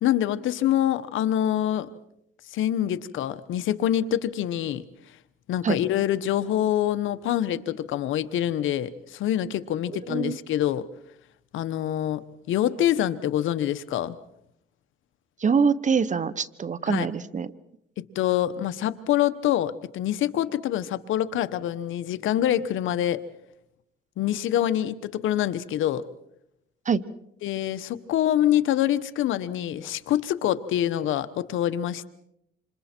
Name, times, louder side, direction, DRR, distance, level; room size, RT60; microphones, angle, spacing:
voice 1, 0.0-1.9 2.5-4.8 5.5-10.8 11.5-14.2 16.9-17.1 18.0-23.2 24.2-26.0 27.4-32.0, left 11 dB, 80° left, 13 dB, 1.1 m, -25 dB
voice 2, 15.4-17.5 26.9-27.0, right 6 dB, 40° right, 16 dB, 1.1 m, -24 dB
27.5 x 27.0 x 4.5 m, 0.78 s
cardioid pair, 90°, 20 cm